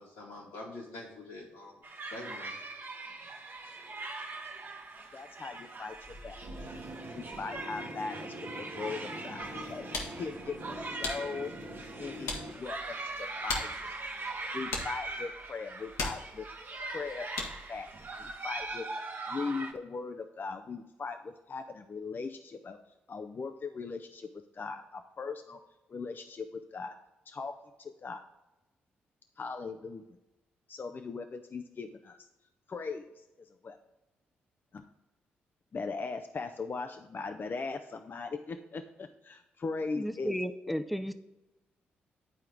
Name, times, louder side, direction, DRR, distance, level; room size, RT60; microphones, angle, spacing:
voice 1, 0.0-1.8 2.1-2.6 3.1-3.2, left 2 dB, 90° left, -7 dB, 2.5 m, -45 dB
sound 1, 1.8-19.7, right 2 dB, 45° right, 1.2 m, -41 dB
voice 2, 5.1-6.4 7.1-9.9 10.2-10.7 11.0-11.5 12.0-13.9 14.5-16.5 16.9-17.3 17.7-17.9 18.2-18.9 19.3-22.8 23.1-25.6 25.9-27.0 27.3-27.5 27.8-28.2 29.4-30.0 30.7-32.2 32.7-33.0 33.6-33.8 34.7-34.8 35.7-40.4 40.7-40.8, left 4 dB, 40° left, 7 dB, 0.6 m, -39 dB
sound 2, 6.4-12.5, equal, 65° right, 1.2 m, -44 dB
sound 3, 9.5-17.8, left 3 dB, 75° left, 1.4 m, -41 dB
voice 3, 40.0-41.1, equal, ahead, 9 dB, 0.6 m, -33 dB
10.0 x 4.4 x 3.6 m, 0.99 s
hypercardioid pair, 40°, 5 cm